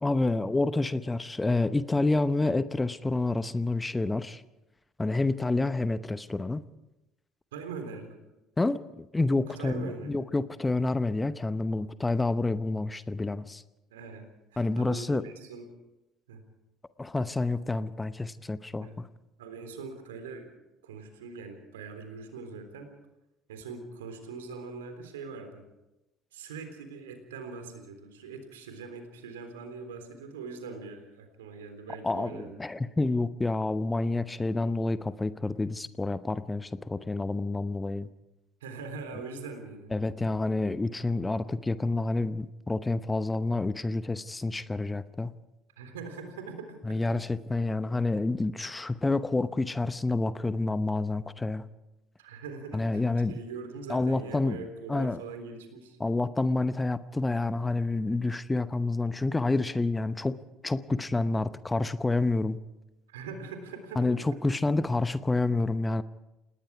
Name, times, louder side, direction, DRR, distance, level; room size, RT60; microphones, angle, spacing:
voice 1, 0.0-4.4 5.0-6.6 8.6-13.6 14.6-15.2 17.0-19.1 32.0-38.1 39.9-45.3 46.8-51.6 52.7-53.3 53.9-55.2 56.0-62.6 64.0-66.0, left 2 dB, 15° left, 14 dB, 0.9 m, -28 dB
voice 2, 7.5-8.2 9.6-10.2 13.9-15.7 16.3-16.4 18.8-19.0 19.4-20.5 20.8-22.9 23.5-25.6 26.3-32.9 38.6-39.9 45.8-47.0 52.2-53.0 53.3-56.0 63.1-64.2, right 4 dB, 75° right, 7 dB, 3.6 m, -42 dB
28.5 x 19.0 x 4.8 m, 0.97 s
figure-of-eight pair, 55°, 0 cm